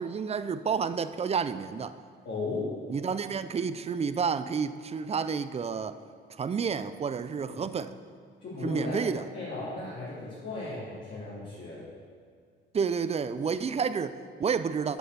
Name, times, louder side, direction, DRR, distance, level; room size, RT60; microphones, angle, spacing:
voice 1, 0.0-2.0 2.9-6.0 6.3-7.9 8.6-9.2 12.7-15.0, right 6 dB, 30° right, 13 dB, 0.5 m, -30 dB
voice 2, 2.2-2.8 7.4-7.6 8.4-11.8, left 2 dB, 60° left, -9 dB, 3.1 m, -36 dB
8.2 x 7.9 x 6.9 m, 2.2 s
cardioid pair, 90°, 20 cm